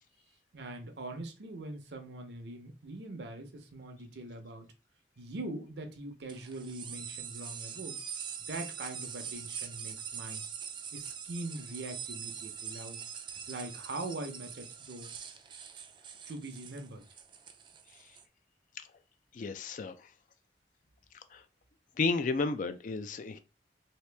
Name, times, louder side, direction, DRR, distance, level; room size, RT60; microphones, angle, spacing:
voice 1, 0.5-4.7 5.2-8.0 8.5-10.4 10.9-13.0 13.3-15.1 16.3-17.1, right 2 dB, 70° right, 0.7 m, -42 dB
sound 1, 6.3-18.2, right 7 dB, 25° right, 0.3 m, -43 dB
voice 2, 19.3-19.9 21.3-21.4 22.0-23.4, left 4 dB, 45° left, 0.4 m, -32 dB
2.8 x 2.8 x 3.3 m
head